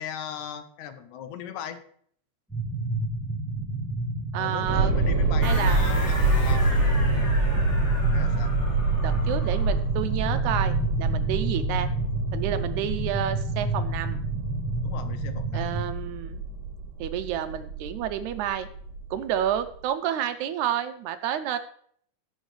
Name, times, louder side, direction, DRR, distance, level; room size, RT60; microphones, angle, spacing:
voice 1, 0.0-1.8 4.4-6.7 8.1-8.5 14.8-15.6, left 9 dB, 75° left, 9 dB, 2.0 m, -38 dB
sound 1, 2.5-15.8, right 2 dB, ahead, 2.9 m, -30 dB
voice 2, 4.3-5.0 5.4-5.8 9.0-11.9 12.3-14.2 15.5-16.4 17.0-18.7 19.1-21.6, right 10 dB, 80° right, 10 dB, 1.9 m, -30 dB
sound 2, 4.7-19.7, right 2 dB, 50° right, 2.1 m, -26 dB
sound 3, 5.4-9.8, left 1 dB, 20° left, 2.9 m, -37 dB
17.0 x 6.5 x 3.2 m, 0.62 s
omnidirectional pair, 3.6 m